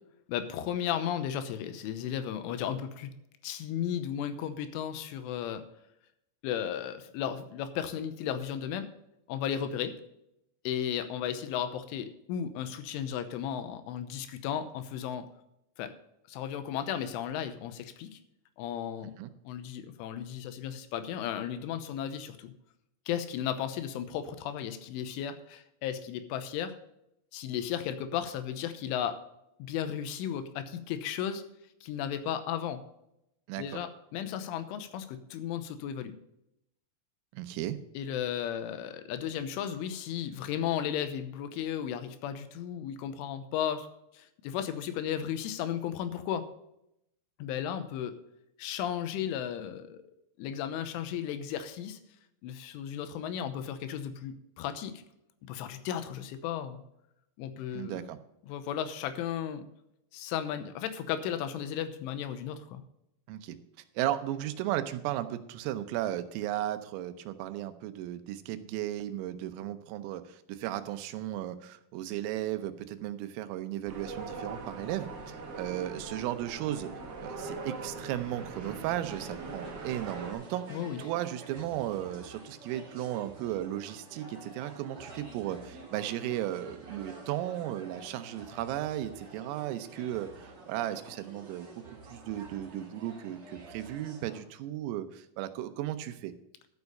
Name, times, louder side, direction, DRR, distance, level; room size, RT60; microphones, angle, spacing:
voice 1, 0.3-3.1 3.4-5.6 6.4-8.9 9.3-9.9 10.6-15.3 15.8-15.9 16.3-18.2 18.6-19.1 19.4-22.5 23.1-26.8 27.3-29.2 29.6-31.4 31.8-32.8 33.6-36.1 37.9-43.9 44.1-46.5 47.4-48.1 48.6-50.0 50.4-52.0 52.4-55.0 55.5-56.8 57.4-58.1 58.5-59.7 60.1-62.8 80.7-81.0, left 9 dB, 80° left, 10 dB, 3.2 m, -34 dB
voice 2, 33.5-33.8 37.3-37.8 57.7-58.2 63.3-63.6 64.0-76.9 77.2-91.7 92.1-96.3, right 13 dB, 85° right, 10 dB, 3.5 m, -35 dB
sound 1, 73.8-80.3, right 3 dB, 70° right, 1.4 m, -41 dB
sound 2, 79.1-94.4, right 3 dB, 35° right, 3.0 m, -49 dB
13.0 x 7.1 x 5.4 m, 0.82 s
omnidirectional pair, 5.9 m